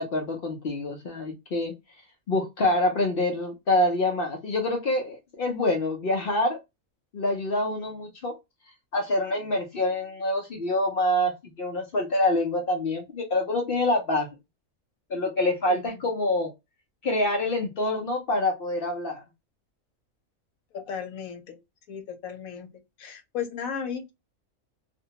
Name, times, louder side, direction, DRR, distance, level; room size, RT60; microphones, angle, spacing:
voice 1, 0.0-1.7 2.3-6.6 7.1-8.3 8.9-14.3 15.1-16.5 17.0-19.2, left 1 dB, 55° left, 0.6 m, -26 dB
voice 2, 15.7-16.0 20.7-21.6 21.9-22.7 23.0-24.1, left 7 dB, 85° left, 1.1 m, -35 dB
2.5 x 2.2 x 2.7 m
omnidirectional pair, 1.4 m